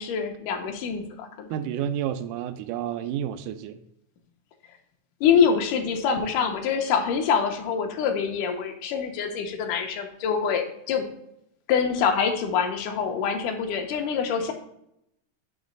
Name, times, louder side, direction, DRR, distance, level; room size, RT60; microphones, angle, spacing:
voice 1, 0.0-1.5 5.2-11.0 11.7-14.5, left 6 dB, 80° left, 2.3 m, -25 dB
voice 2, 1.5-3.8, right 10 dB, 80° right, 2.0 m, -30 dB
7.2 x 3.1 x 5.1 m
omnidirectional pair, 3.7 m